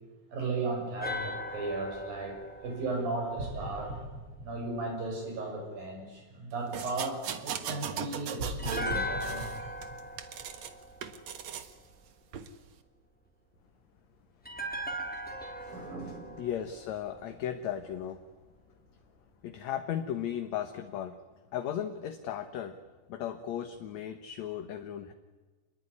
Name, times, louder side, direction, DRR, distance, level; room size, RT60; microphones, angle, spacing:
voice 1, 0.3-4.0 4.4-9.7 15.7-16.3, right 3 dB, 80° right, 3 dB, 8.4 m, -36 dB
sound 1, 1.0-4.2 8.6-11.8 14.4-17.7 17.9-18.1, left 1 dB, 5° left, 3.5 m, -39 dB
sound 2, 3.4-5.7 8.4-10.9, right 2 dB, 40° right, 7.4 m, -40 dB
sound 3, 6.7-8.9 9.2-10.7 11.0-11.7 12.3-12.5, right 8 dB, 55° right, 2.4 m, -39 dB
voice 2, 16.4-18.2 19.4-21.2 21.5-22.8 23.1-25.1, left 10 dB, 60° left, 8 dB, 2.2 m, -36 dB
27.5 x 21.0 x 9.8 m, 1.3 s
omnidirectional pair, 4.0 m